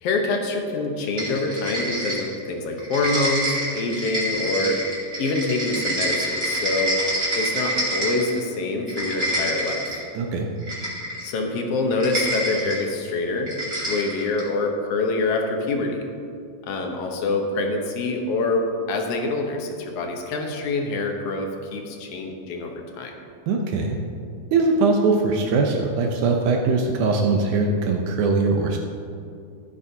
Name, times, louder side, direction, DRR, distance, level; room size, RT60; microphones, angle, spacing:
voice 1, 0.0-4.8 5.2-6.9 7.4-9.9 11.2-13.6 13.9-16.1 16.6-23.1, left 3 dB, 65° left, 2 dB, 1.6 m, -25 dB
sound 1, 1.2-2.5 2.8-8.4 8.8-10.0 10.6-11.3 11.9-12.8 13.5-14.5, right 1 dB, 25° right, 2.9 m, -27 dB
voice 2, 10.2-10.5 23.5-24.0 24.5-28.8, right 3 dB, 75° right, 1 dB, 2.1 m, -21 dB
15.5 x 8.9 x 2.8 m, 2.4 s
omnidirectional pair, 3.7 m